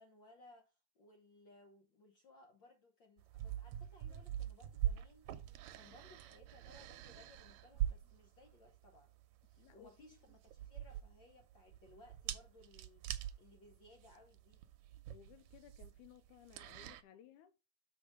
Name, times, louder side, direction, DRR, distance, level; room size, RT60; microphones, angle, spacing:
voice 1, 0.0-5.3 5.7-9.1 9.4-13.0 13.4-14.6, left 2 dB, 65° left, 1.1 m, -63 dB
sound 1, 3.2-17.0, right 12 dB, 75° right, 1.8 m, -44 dB
voice 2, 9.6-10.2 15.1-17.5, left 11 dB, 85° left, 2.0 m, -60 dB
7.3 x 5.3 x 5.0 m
omnidirectional pair, 3.6 m